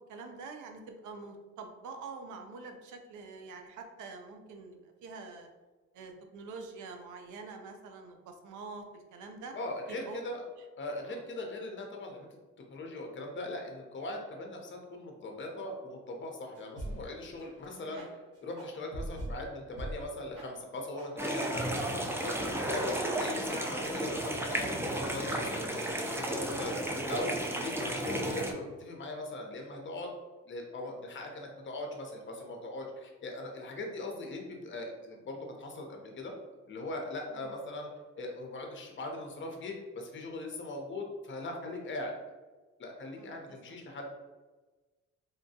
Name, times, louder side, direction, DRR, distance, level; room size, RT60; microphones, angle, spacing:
voice 1, 0.1-5.5 5.9-9.5 9.9-10.2 11.1-11.2 17.8-18.1 37.3-37.5 43.1-43.6, right 4 dB, 80° right, 5 dB, 0.5 m, -46 dB
voice 2, 9.5-10.4 10.8-12.3 12.7-21.8 22.2-26.8 27.1-30.1 30.5-36.3 36.7-37.9 38.2-42.1 42.8-44.1, left 2 dB, 40° left, 2 dB, 0.7 m, -40 dB
sound 1, 16.5-17.1 17.4-17.5 17.9-18.1 18.6-19.3 19.8-19.9 20.3-20.5 21.0-21.1 21.6-21.7, right 1 dB, 50° right, 1.4 m, -39 dB
sound 2, 21.2-28.5, right 1 dB, 10° right, 0.3 m, -33 dB
3.6 x 2.2 x 2.7 m, 1.3 s
cardioid pair, 90°, 30 cm